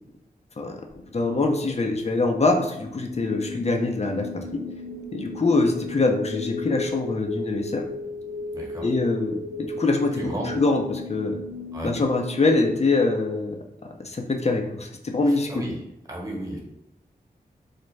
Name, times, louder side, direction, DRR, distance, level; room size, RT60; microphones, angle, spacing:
voice 1, 0.6-4.6 5.1-7.8 8.8-10.1 10.5-11.4 11.8-15.5, left 3 dB, 40° left, 3 dB, 0.6 m, -24 dB
sound 1, 0.9-12.7, left 2 dB, 85° left, 0.9 m, -36 dB
voice 2, 8.5-8.9 10.1-10.6 11.7-11.9 15.2-15.8 16.1-16.6, right 1 dB, 20° right, -2 dB, 1.2 m, -33 dB
4.0 x 2.1 x 3.2 m, 0.85 s
cardioid pair, 45°, 17 cm